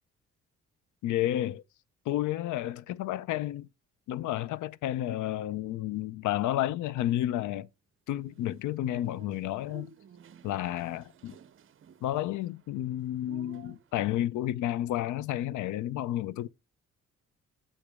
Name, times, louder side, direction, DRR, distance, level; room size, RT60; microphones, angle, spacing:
voice 1, 1.0-1.6 2.1-3.7 4.1-7.7 8.1-9.9 10.4-11.4 12.0-16.5, left 13 dB, 80° left, 0.5 m, -31 dB
sound 1, 8.3-14.0, right 7 dB, 45° right, 0.6 m, -54 dB
7.2 x 5.0 x 3.5 m
cardioid pair, 90°, 30 cm